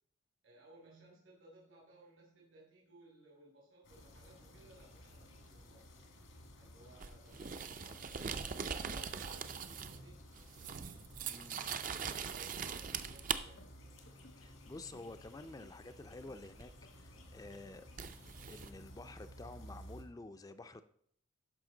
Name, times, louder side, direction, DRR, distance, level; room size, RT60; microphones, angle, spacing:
voice 1, 0.4-5.8 6.6-10.2 11.9-13.7, right 2 dB, 80° right, -3 dB, 2.7 m, -61 dB
sound 1, 3.8-20.0, equal, 85° left, 1.9 m, -56 dB
sound 2, 7.0-10.1 10.3-13.4 16.6-16.7 18.0-18.7, right 7 dB, 40° right, 0.5 m, -41 dB
sound 3, 11.2-11.8 12.1-13.1 13.4-14.5 14.8-15.9 16.3-17.3 17.5-18.7, left 3 dB, 70° left, 0.9 m, -65 dB
voice 2, 11.2-11.9 14.4-17.9 18.5-20.8, left 2 dB, 20° left, 10 dB, 0.4 m, -50 dB
12.5 x 5.1 x 3.8 m, 0.64 s
head